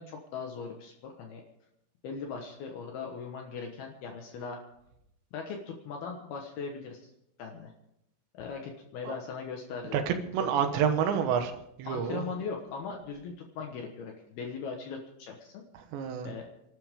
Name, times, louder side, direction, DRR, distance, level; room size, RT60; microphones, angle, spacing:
voice 1, 0.0-1.4 2.0-4.6 5.3-7.1 7.4-7.7 8.3-10.0 10.4-10.8 11.9-15.6 16.2-16.5, left 5 dB, 65° left, 1 dB, 3.0 m, -39 dB
voice 2, 9.9-11.5 11.8-12.2 15.9-16.3, right 7 dB, 80° right, 7 dB, 3.5 m, -28 dB
28.5 x 12.5 x 3.7 m, 0.81 s
omnidirectional pair, 5.1 m